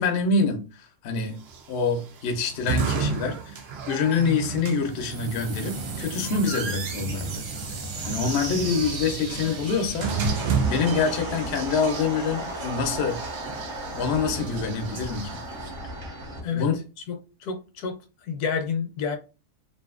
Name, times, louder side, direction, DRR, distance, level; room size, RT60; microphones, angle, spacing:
voice 1, 0.0-1.4 1.7-7.5 8.0-10.2 10.7-13.2 13.9-15.4 16.5-16.8, left 5 dB, 60° left, 0.7 m, -26 dB
sound 1, 1.4-15.7, right 5 dB, 80° right, 0.5 m, -33 dB
sound 2, 4.7-11.6, right 3 dB, 65° right, 1.0 m, -35 dB
sound 3, 10.0-16.4, right 1 dB, 45° right, 0.7 m, -35 dB
voice 2, 17.1-18.0 18.2-19.2, left 6 dB, 75° left, 1.1 m, -29 dB
2.7 x 2.5 x 2.4 m
omnidirectional pair, 1.7 m